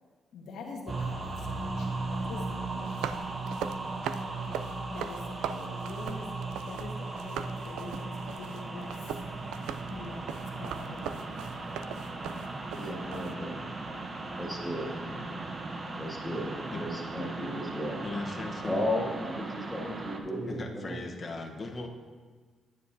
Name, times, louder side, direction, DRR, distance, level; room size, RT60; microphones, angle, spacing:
voice 1, 0.3-3.6 4.9-8.9 9.9-11.5, left 3 dB, 75° left, 0 dB, 1.5 m, -45 dB
sound 1, 0.9-20.2, right 3 dB, 35° right, 0.9 m, -37 dB
sound 2, 2.7-6.9 7.2-13.3, right 9 dB, 90° right, 0.3 m, -39 dB
voice 2, 12.7-13.6 14.4-14.9 16.0-18.0 18.6-21.0, left 1 dB, 5° left, -3 dB, 2.0 m, -34 dB
voice 3, 18.0-18.8 20.5-21.9, left 2 dB, 35° left, 2 dB, 1.0 m, -38 dB
10.0 x 9.4 x 2.7 m, 1.4 s
cardioid pair, 90°, 0 cm